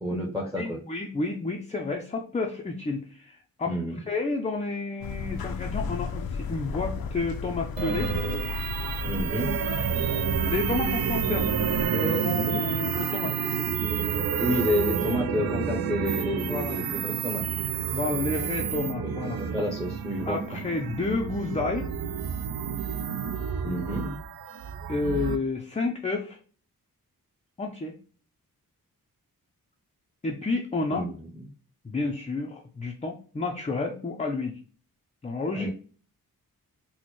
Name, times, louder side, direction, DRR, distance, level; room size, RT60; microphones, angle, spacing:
voice 1, 0.0-0.8 3.7-4.0 9.0-9.5 14.3-17.4 19.0-20.4 23.6-24.1 30.9-31.5 35.5-35.7, equal, 10° right, -1 dB, 0.7 m, -30 dB
voice 2, 0.6-3.7 4.1-8.1 10.5-11.5 11.9-13.3 16.5-16.8 17.9-19.4 20.3-21.9 24.9-26.4 27.6-27.9 30.2-31.1 31.8-34.5 35.2-35.7, left 3 dB, 20° left, 1 dB, 0.4 m, -30 dB
sound 1, 5.0-11.9, left 5 dB, 75° left, 0.5 m, -33 dB
sound 2, 7.8-25.4, right 7 dB, 85° right, 0.5 m, -29 dB
4.2 x 2.1 x 2.9 m, 0.40 s
wide cardioid pair, 150°, 36 cm